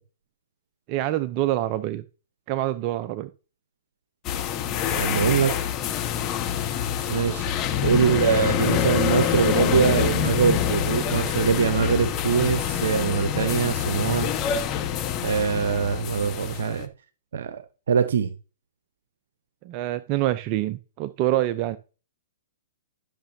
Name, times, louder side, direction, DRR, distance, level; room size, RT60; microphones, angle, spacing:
voice 1, 0.9-2.0 2.5-3.3 19.6-21.8, right 14 dB, 40° right, 11 dB, 0.6 m, -26 dB
sound 1, 4.2-16.8, left 9 dB, 30° left, 1.3 m, -26 dB
voice 2, 4.9-5.5 7.1-7.5 7.8-14.3 15.2-16.9 17.3-17.6 17.9-18.3, right 7 dB, 70° right, 11 dB, 0.8 m, -23 dB
13.5 x 6.7 x 2.7 m, 0.34 s
hypercardioid pair, 125°, 0 cm